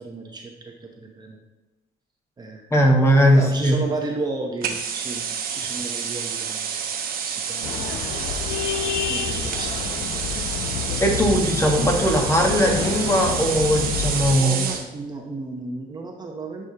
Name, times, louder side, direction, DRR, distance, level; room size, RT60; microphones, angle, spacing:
voice 1, 0.0-1.4 2.4-2.6 3.3-6.8 7.2-8.0 9.1-10.5 14.3-16.7, right 3 dB, 25° right, 1 dB, 0.9 m, -34 dB
voice 2, 2.7-3.8 11.0-14.7, equal, 15° left, 1 dB, 1.3 m, -19 dB
sound 1, 4.6-14.9, right 7 dB, 60° right, 1.0 m, -29 dB
sound 2, 7.6-14.3, left 7 dB, 75° left, 0.7 m, -29 dB
10.0 x 5.0 x 2.9 m, 1.1 s
cardioid pair, 110°, 17 cm